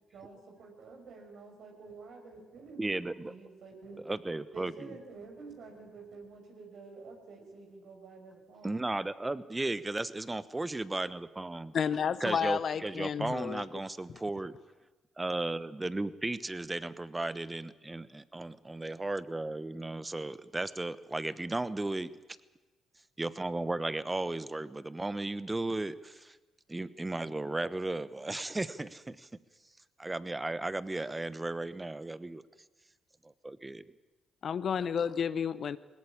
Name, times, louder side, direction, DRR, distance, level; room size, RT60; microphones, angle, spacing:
voice 1, 0.1-4.0 4.5-8.8, right 4 dB, 65° right, 2 dB, 5.6 m, -49 dB
voice 2, 2.8-3.3 4.0-4.9 8.6-11.7 12.2-14.6 15.2-22.1 23.2-26.4 26.7-29.3 30.0-32.4 33.2-33.9, right 2 dB, 20° right, 16 dB, 1.1 m, -35 dB
voice 3, 11.7-13.7 34.4-35.8, left 7 dB, 55° left, 16 dB, 0.8 m, -31 dB
20.5 x 18.0 x 8.7 m, 1.2 s
hypercardioid pair, 45°, 0 cm